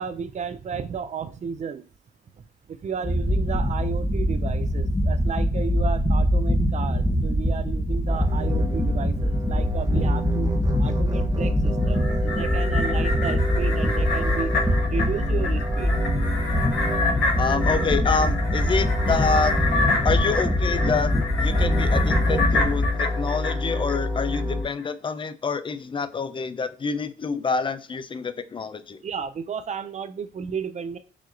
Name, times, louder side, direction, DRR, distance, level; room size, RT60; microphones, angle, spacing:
voice 1, 0.0-1.8 2.7-10.5 10.8-14.5 14.9-15.9 29.0-31.0, right 6 dB, 35° right, 11 dB, 0.4 m, -33 dB
sound 1, 3.0-22.9, equal, 10° left, 0.8 m, -24 dB
sound 2, 8.1-24.6, left 2 dB, 20° right, 0.8 m, -27 dB
sound 3, 11.8-24.4 24.8-24.9, left 3 dB, 65° left, 1.4 m, -29 dB
voice 2, 17.4-19.5 20.0-29.0, left 5 dB, 25° left, 12 dB, 0.4 m, -27 dB
4.8 x 2.8 x 2.5 m, 0.36 s
cardioid pair, 70°, 20 cm